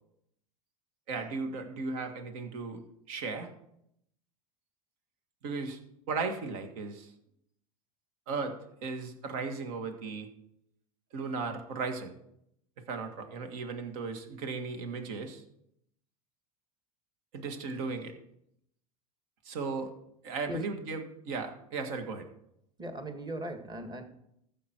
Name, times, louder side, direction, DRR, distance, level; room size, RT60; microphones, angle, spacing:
voice 1, 1.1-2.8 3.1-3.5 5.4-5.8 6.1-7.1 8.3-8.6 8.8-10.3 11.1-12.1 12.9-15.4 17.3-18.1 19.4-19.9 20.2-22.3, right 4 dB, 65° right, 6 dB, 1.8 m, -36 dB
voice 2, 22.8-24.0, right 1 dB, 20° right, 6 dB, 1.9 m, -38 dB
14.5 x 7.4 x 4.6 m, 0.76 s
hypercardioid pair, 90°, 19 cm